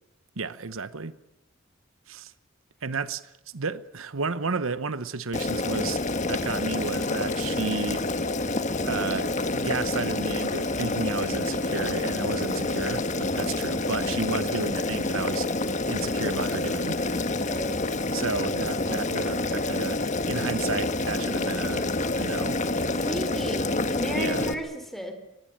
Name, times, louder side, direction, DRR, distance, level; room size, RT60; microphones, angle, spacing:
voice 1, 0.4-1.1 2.1-2.3 2.8-8.1 8.8-15.5 15.9-17.4 18.1-22.6 24.1-24.5, right 4 dB, 90° right, 1.0 m, -32 dB
Boiling, 5.3-24.5, left 2 dB, 35° left, 1.6 m, -28 dB
voice 2, 17.4-17.8 23.0-25.1, equal, ahead, 4.1 m, -35 dB
24.0 x 20.5 x 8.8 m
head